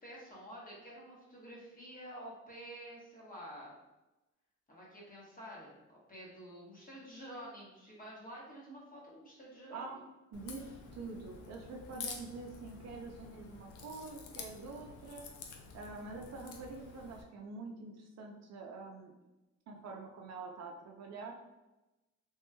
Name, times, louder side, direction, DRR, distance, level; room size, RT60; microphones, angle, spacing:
voice 1, 0.0-3.8 4.7-10.0, equal, 30° left, -5 dB, 1.2 m, -49 dB
Crack, 10.3-17.2, left 5 dB, 80° left, 0.5 m, -49 dB
voice 2, 10.3-15.3 15.7-19.1 19.7-21.3, right 3 dB, 60° right, 1 dB, 0.5 m, -46 dB
3.0 x 2.9 x 2.2 m, 1.0 s
cardioid pair, 90°, 30 cm